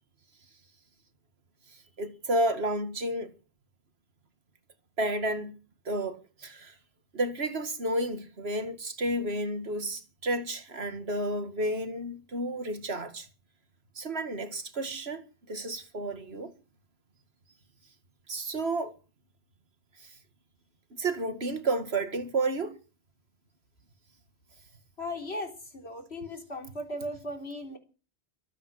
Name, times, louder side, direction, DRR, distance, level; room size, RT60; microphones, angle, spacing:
voice 1, 2.0-3.3 5.0-5.5 5.9-6.7 7.1-13.3 14.0-16.5 18.3-18.9 21.0-22.7, right 1 dB, 70° right, 2.2 m, -31 dB
voice 2, 25.0-27.8, left 1 dB, 75° left, 4.0 m, -37 dB
23.5 x 9.2 x 6.4 m
omnidirectional pair, 1.1 m